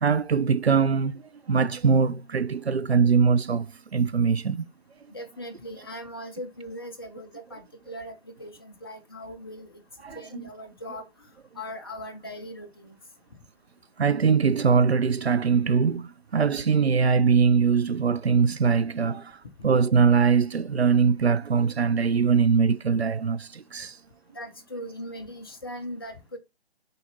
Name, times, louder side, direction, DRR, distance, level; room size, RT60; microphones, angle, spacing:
voice 1, 0.0-1.2 1.5-4.7 10.0-10.2 14.0-24.0, right 5 dB, 70° right, 0.6 m, -22 dB
voice 2, 5.1-9.8 10.1-11.3 11.5-13.0 24.3-26.4, equal, 20° left, 0.7 m, -39 dB
6.7 x 4.1 x 3.9 m
figure-of-eight pair, 145°, 33 cm